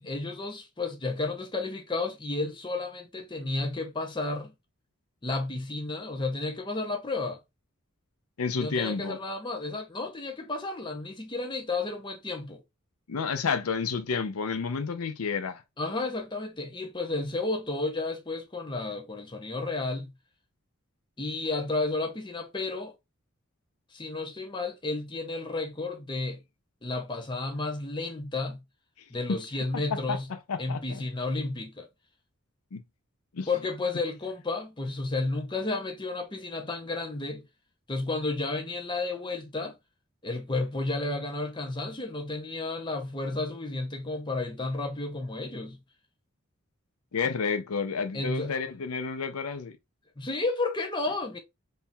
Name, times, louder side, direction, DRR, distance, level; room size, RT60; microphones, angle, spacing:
voice 1, 0.0-4.5 5.2-7.4 8.5-12.6 15.8-20.1 21.2-22.9 23.9-26.4 26.8-28.6 29.1-30.3 30.6-31.9 33.5-37.4 37.9-39.8 40.2-45.8 48.1-48.5 50.2-51.4, left 3 dB, 20° left, 0.7 m, -32 dB
voice 2, 8.4-9.2 13.1-15.6 29.3-29.4 29.7-31.0 32.7-32.8 33.3-33.5 47.1-49.7, left 5 dB, 85° left, 0.6 m, -30 dB
3.7 x 2.7 x 2.6 m
head